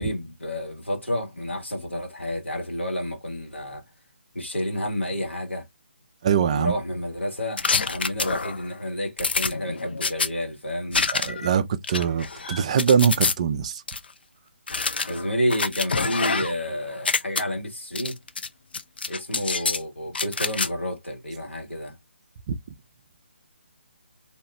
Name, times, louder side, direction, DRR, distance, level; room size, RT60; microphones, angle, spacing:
voice 1, 0.0-3.8 4.3-5.7 6.5-11.0 15.1-18.2 19.1-21.9, equal, 80° left, 1.6 m, -30 dB
voice 2, 6.2-6.7 11.1-13.8 22.5-22.6, right 7 dB, 35° right, 0.4 m, -22 dB
sound 1, 7.6-8.7 9.2-10.3 10.9-11.5 11.8-13.3 13.9-14.0 14.7-16.7 16.9-17.4 18.0-18.5 18.7-19.8 20.1-20.7, left 4 dB, 60° left, 0.5 m, -26 dB
2.9 x 2.4 x 3.2 m
figure-of-eight pair, 145°, 6 cm